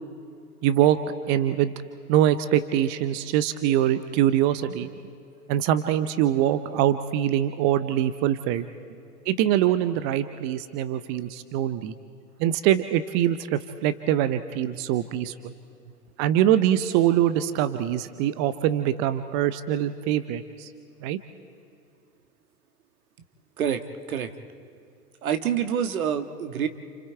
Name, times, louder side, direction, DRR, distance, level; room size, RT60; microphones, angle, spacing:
voice 1, 0.6-1.0 1.3-1.7 2.1-4.9 5.5-8.7 9.3-11.9 12.4-15.5 16.2-20.7 21.0-21.2, right 11 dB, 25° right, 12 dB, 0.6 m, -23 dB
voice 2, 25.2-26.7, right 8 dB, 60° right, 8 dB, 1.7 m, -26 dB
29.5 x 28.5 x 4.6 m, 2.5 s
figure-of-eight pair, 105°, 48 cm